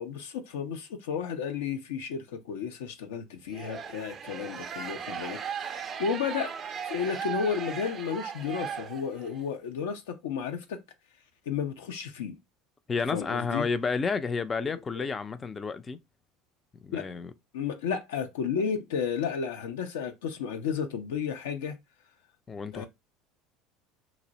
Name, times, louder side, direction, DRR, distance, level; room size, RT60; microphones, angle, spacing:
voice 1, 0.0-6.5 6.8-10.8 11.5-12.4 13.1-13.7 14.6-15.1 16.9-17.1 17.5-21.8 22.7-22.9, left 6 dB, 80° left, 0.5 m, -33 dB
sound 1, 3.5-9.4, right 7 dB, 40° right, 0.4 m, -37 dB
voice 2, 12.9-16.0 16.8-17.3 22.5-22.9, left 4 dB, 25° left, 0.4 m, -31 dB
2.6 x 2.0 x 3.8 m
hypercardioid pair, 75°, 0 cm